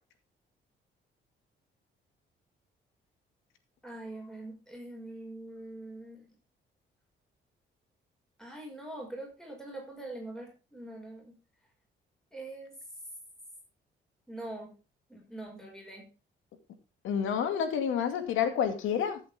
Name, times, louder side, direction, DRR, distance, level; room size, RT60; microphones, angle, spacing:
voice 1, 3.8-6.3 8.4-11.4 12.3-12.7 14.3-14.8 15.1-16.1, right 2 dB, 5° left, 5.6 m, -43 dB
voice 2, 17.0-19.2, left 8 dB, 85° left, 2.4 m, -29 dB
14.5 x 8.1 x 3.6 m
cardioid pair, 90°, 20 cm